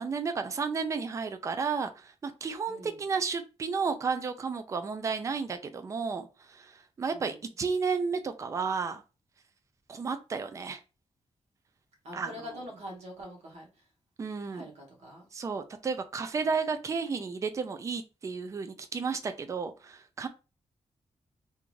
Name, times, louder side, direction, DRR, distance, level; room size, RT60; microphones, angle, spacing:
voice 1, 0.0-9.0 9.9-10.8 12.1-12.6 14.2-14.6 15.3-20.3, right 5 dB, 30° right, 8 dB, 0.4 m, -32 dB
voice 2, 2.7-3.0 7.1-7.4 12.0-13.7 14.5-15.3, equal, 85° right, -1 dB, 1.5 m, -44 dB
3.5 x 2.5 x 3.1 m, 0.30 s
wide cardioid pair, 175°, 11 cm